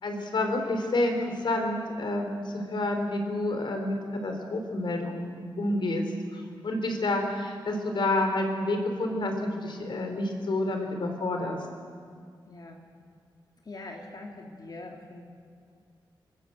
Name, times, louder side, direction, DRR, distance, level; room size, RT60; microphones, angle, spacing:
voice 1, 0.0-6.0 6.3-11.6, left 2 dB, 70° left, 4 dB, 4.1 m, -29 dB
voice 2, 12.5-12.8 13.6-15.2, left 2 dB, 50° left, 1 dB, 3.5 m, -43 dB
26.0 x 21.5 x 8.0 m, 2.1 s
wide cardioid pair, 100°, 8 cm